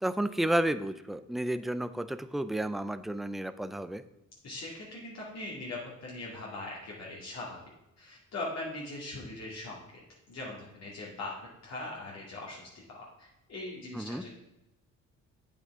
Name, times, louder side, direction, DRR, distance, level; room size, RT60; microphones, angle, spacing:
voice 1, 0.0-4.0 13.9-14.2, right 1 dB, ahead, 12 dB, 0.4 m, -31 dB
voice 2, 4.4-7.6 8.0-10.0 10.3-11.3 11.6-14.3, left 2 dB, 60° left, -5 dB, 2.2 m, -41 dB
8.3 x 8.1 x 3.6 m, 0.93 s
cardioid pair, 90°, 30 cm